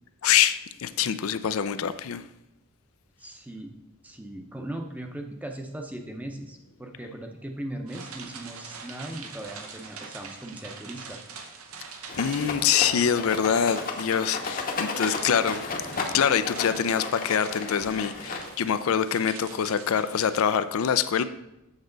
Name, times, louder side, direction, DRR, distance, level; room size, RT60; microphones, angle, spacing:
voice 1, 0.2-2.2 12.2-15.7 16.1-21.2, left 8 dB, 80° left, 12 dB, 0.4 m, -25 dB
voice 2, 3.2-3.7 4.0-11.2, right 1 dB, 5° right, 3 dB, 0.6 m, -38 dB
sound 1, 7.9-20.4, right 5 dB, 85° right, 0.9 m, -44 dB
Rattle, 12.1-18.8, left 3 dB, 40° left, 0.8 m, -34 dB
8.0 x 6.3 x 3.9 m, 0.91 s
head